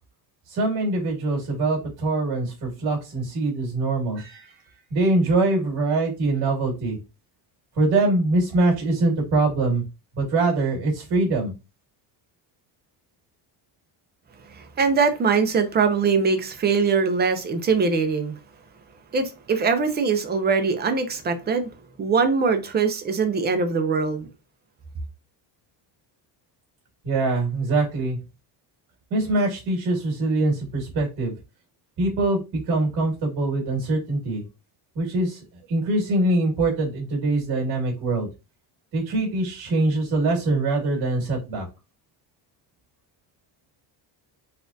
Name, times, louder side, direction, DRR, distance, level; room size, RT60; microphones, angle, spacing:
voice 1, 0.5-4.5 4.9-7.0 7.8-9.8 10.2-11.5 27.0-28.2 29.1-31.3 32.0-34.4 35.0-35.4 35.7-38.3 38.9-41.7, right 2 dB, 55° right, 2.0 m, -23 dB
voice 2, 14.5-18.4 19.1-21.7 22.0-24.3, right 5 dB, 25° right, 0.5 m, -22 dB
4.2 x 2.4 x 2.6 m
cardioid pair, 145°, 45 cm